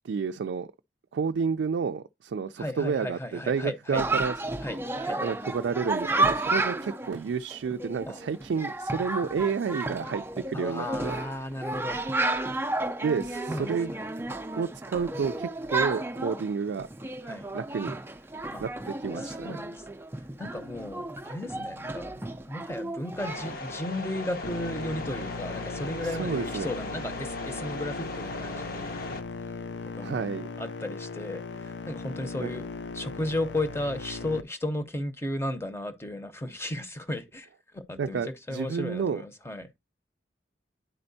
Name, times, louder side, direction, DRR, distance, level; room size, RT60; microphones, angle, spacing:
voice 1, 0.0-0.7 1.1-4.3 5.2-11.2 13.0-13.9 14.6-16.9 17.5-18.0 18.6-19.6 26.2-26.7 30.0-30.5 32.4-32.5 38.0-39.2, right 5 dB, 80° right, 0.3 m, -30 dB
voice 2, 2.6-4.0 4.6-5.2 6.1-6.2 8.1-8.2 10.5-12.1 13.5-14.1 17.2-17.5 18.5-18.7 19.2-19.9 20.4-29.1 29.9-30.2 30.6-32.7 32.9-37.5 37.7-39.7, left 1 dB, 15° left, 0.7 m, -35 dB
Chatter, 3.9-23.5, right 2 dB, 15° right, 0.4 m, -32 dB
sound 1, 23.2-29.2, left 2 dB, 55° left, 0.9 m, -38 dB
sound 2, 24.4-34.4, left 3 dB, 75° left, 0.5 m, -38 dB
10.0 x 4.3 x 2.7 m
head